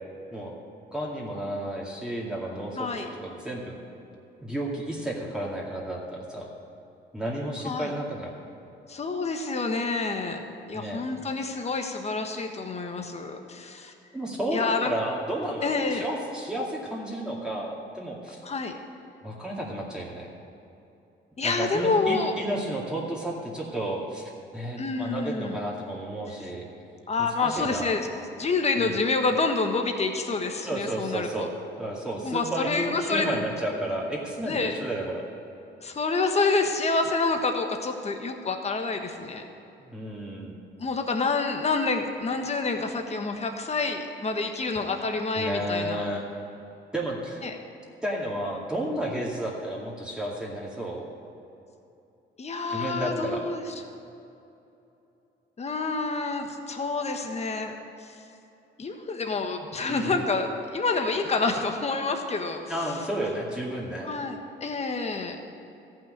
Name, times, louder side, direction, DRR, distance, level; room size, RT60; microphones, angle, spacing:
voice 1, 0.9-3.7 4.4-6.5 7.1-8.3 10.7-11.0 14.1-18.4 19.2-20.3 21.4-26.7 27.2-27.9 28.8-29.0 30.7-31.5 31.8-35.2 39.8-40.5 45.4-46.2 46.9-47.4 48.0-51.1 52.7-53.4 59.9-60.2 62.7-64.1, right 1 dB, 5° right, -4 dB, 2.3 m, -32 dB
voice 2, 2.8-3.1 7.6-7.9 8.9-10.4 10.7-13.9 14.5-14.9 15.6-16.1 18.4-18.7 21.4-22.3 24.8-25.6 27.1-28.0 28.3-31.5 32.2-33.4 34.4-34.7 35.8-39.4 40.8-46.0 47.4-47.6 52.4-53.6 55.6-58.2 58.8-62.7 64.0-65.4, left 3 dB, 35° left, 4 dB, 1.3 m, -28 dB
14.0 x 6.1 x 8.8 m, 2.8 s
cardioid pair, 90°, 20 cm